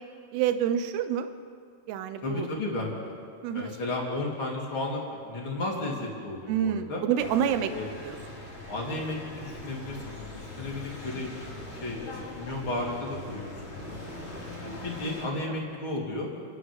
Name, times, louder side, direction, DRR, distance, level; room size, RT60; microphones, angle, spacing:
voice 1, 0.3-1.3 1.9-2.5 3.4-3.8 6.5-7.7 8.0-8.4, right 9 dB, 80° right, 10 dB, 3.0 m, -28 dB
voice 2, 2.2-3.1 3.5-7.0 7.7-7.9 8.7-14.0 14.6-16.3, left 2 dB, 30° left, -3 dB, 4.0 m, -34 dB
sound 1, 7.2-15.2, left 2 dB, 15° left, 3.6 m, -41 dB
29.0 x 9.9 x 9.6 m, 2.2 s
omnidirectional pair, 4.7 m